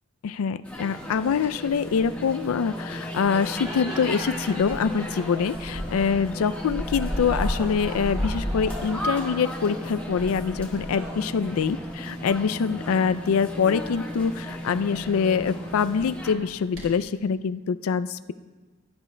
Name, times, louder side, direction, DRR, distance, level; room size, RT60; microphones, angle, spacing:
voice 1, 0.2-18.3, left 6 dB, 90° left, 13 dB, 0.4 m, -25 dB
sound 1, 0.6-16.3, equal, 5° left, 1.4 m, -35 dB
sound 2, 0.9-17.2, equal, 50° right, 3.2 m, -39 dB
sound 3, 3.1-12.2, right 1 dB, 20° right, 2.6 m, -43 dB
18.5 x 10.5 x 2.2 m, 1.3 s
head